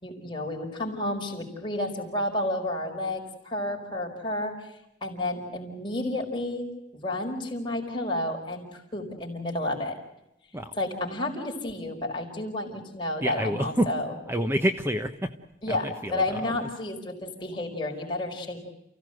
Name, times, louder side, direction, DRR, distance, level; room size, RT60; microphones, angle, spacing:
voice 1, 0.0-4.5 5.0-6.7 6.9-10.0 10.7-14.1 15.6-18.6, left 1 dB, 25° left, 0 dB, 5.0 m, -31 dB
voice 2, 13.2-13.9 14.3-15.3 15.7-16.5, equal, 15° right, 7 dB, 1.0 m, -28 dB
29.5 x 16.5 x 7.8 m, 0.87 s
head